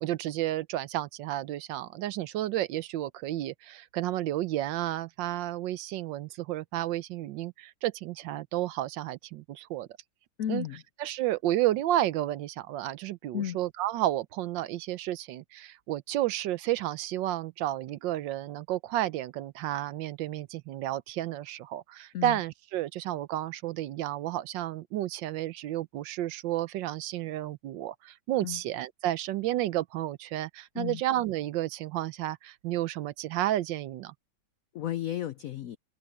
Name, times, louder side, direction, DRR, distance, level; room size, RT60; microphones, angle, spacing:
voice 1, 0.0-9.9 10.5-10.7 11.0-34.1, right 14 dB, 75° right, 1.3 m, -31 dB
voice 2, 10.4-10.8 13.3-13.6 22.1-22.4 28.4-28.6 30.8-31.0 34.7-35.8, left 11 dB, 90° left, 0.7 m, -33 dB
omnidirectional pair, 2.1 m